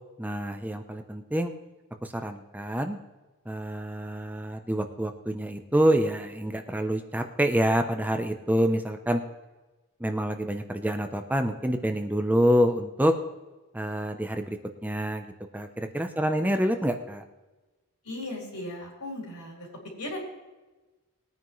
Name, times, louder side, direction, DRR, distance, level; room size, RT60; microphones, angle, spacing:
voice 1, 0.2-1.5 2.0-3.0 3.5-9.2 10.0-13.1 13.7-17.2, equal, 5° right, 6 dB, 0.6 m, -27 dB
voice 2, 18.0-19.7 20.0-20.2, left 1 dB, 85° left, -2 dB, 4.5 m, -37 dB
20.0 x 9.4 x 3.2 m, 1.2 s
head